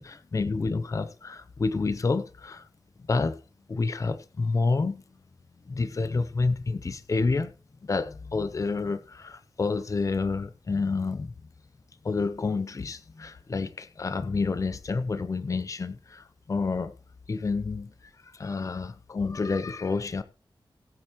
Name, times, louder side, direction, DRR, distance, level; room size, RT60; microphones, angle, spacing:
voice 1, 0.0-2.7 3.1-3.4 3.7-5.0 5.7-7.5 7.8-11.3 12.0-16.9 17.3-20.2, left 4 dB, 40° left, 0.7 m, -29 dB
19.0 x 8.8 x 3.0 m
wide cardioid pair, 135°, 9 cm